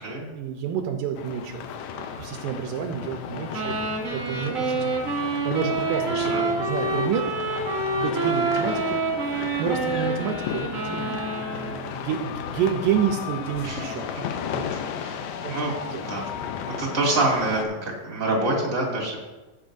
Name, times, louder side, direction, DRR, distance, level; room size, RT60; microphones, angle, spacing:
voice 1, 0.3-1.7 1.9-4.9 5.4-7.2 7.9-9.0 9.6-14.1 14.5-14.6 15.4-16.0, right 8 dB, 80° right, 4 dB, 2.3 m, -29 dB
sound 1, 1.1-17.6, left 7 dB, 80° left, 2.2 m, -34 dB
sound 2, 3.5-11.9, right 3 dB, 50° right, 0.9 m, -27 dB
voice 2, 14.7-15.2 15.5-15.8 16.0-16.2 16.7-17.8 18.0-19.2, right 2 dB, 25° right, -3 dB, 2.1 m, -26 dB
14.0 x 7.9 x 2.6 m, 1.1 s
omnidirectional pair, 3.9 m